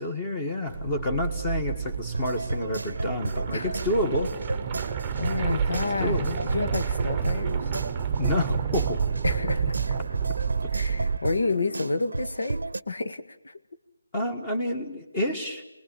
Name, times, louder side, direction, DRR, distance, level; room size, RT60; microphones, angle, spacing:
voice 1, 0.0-4.3 6.0-6.4 8.2-9.0 14.1-15.6, left 1 dB, 20° left, 4 dB, 1.7 m, -29 dB
Accelerating revving vroom, 0.7-11.2, right 7 dB, 30° right, 0.8 m, -31 dB
sound 1, 2.1-12.8, right 2 dB, 85° right, 0.7 m, -33 dB
sound 2, 2.8-10.9, right 8 dB, 10° right, 1.0 m, -35 dB
voice 2, 5.2-7.7 9.2-9.8 10.7-13.5, left 3 dB, 70° left, 8 dB, 1.9 m, -30 dB
27.0 x 20.0 x 7.2 m, 0.97 s
figure-of-eight pair, 165°, 0 cm